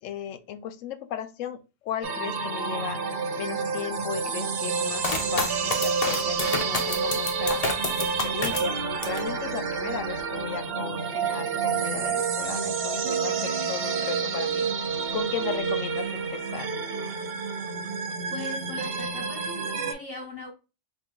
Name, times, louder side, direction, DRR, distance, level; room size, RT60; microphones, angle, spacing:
voice 1, 0.0-3.0 3.4-7.6 8.0-16.7, left 10 dB, 85° left, 0.9 m, -36 dB
sound 1, 2.0-19.9, right 5 dB, 60° right, 0.7 m, -29 dB
sound 2, 5.0-9.3 9.7-10.4, left 3 dB, 35° left, 0.7 m, -30 dB
voice 2, 18.3-20.5, left 2 dB, 55° left, 1.4 m, -39 dB
4.5 x 2.2 x 3.5 m
omnidirectional pair, 1.3 m